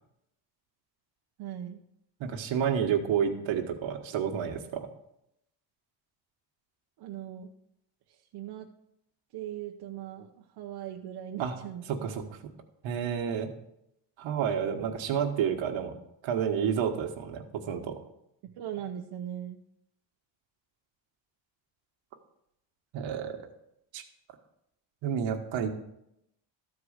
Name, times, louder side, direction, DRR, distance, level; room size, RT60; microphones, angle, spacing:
voice 1, 1.4-1.8 7.0-7.5 8.1-8.7 9.3-12.3 18.4-19.6, right 10 dB, 55° right, 1 dB, 0.8 m, -40 dB
voice 2, 2.2-4.9 11.4-11.6 11.9-12.2 12.8-13.5 14.2-15.9 16.2-18.0 22.9-23.4 23.9-24.0 25.0-25.7, right 8 dB, 70° right, 4 dB, 1.4 m, -30 dB
13.5 x 4.7 x 6.5 m, 0.81 s
cardioid pair, 175°, 47 cm